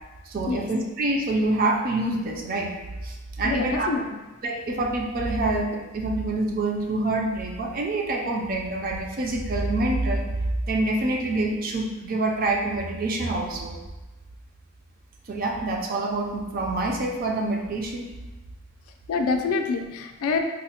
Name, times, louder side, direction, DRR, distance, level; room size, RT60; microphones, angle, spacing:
voice 1, 0.3-2.8 3.0-3.9 4.4-10.3 10.7-13.8 15.3-18.1, right 2 dB, 40° right, 1 dB, 0.4 m, -26 dB
voice 2, 3.4-4.2 19.1-20.4, left 4 dB, 75° left, 5 dB, 0.3 m, -26 dB
4.0 x 2.0 x 2.8 m, 1.1 s
head